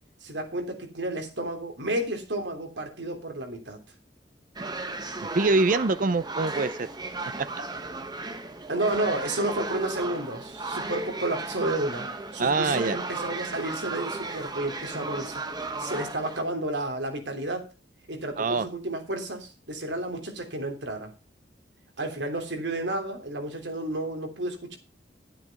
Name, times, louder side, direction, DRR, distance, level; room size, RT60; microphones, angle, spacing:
voice 1, 0.2-3.8 8.7-12.1 12.3-15.4 15.8-17.7 18.1-21.1 22.0-24.8, right 1 dB, 85° right, 5 dB, 3.2 m, -31 dB
sound 1, 4.6-16.4, right 3 dB, 25° right, 1.2 m, -35 dB
voice 2, 5.3-6.9 12.4-13.0 18.4-18.7, right 3 dB, 50° right, 14 dB, 0.6 m, -24 dB
11.5 x 9.2 x 5.3 m, 0.31 s
head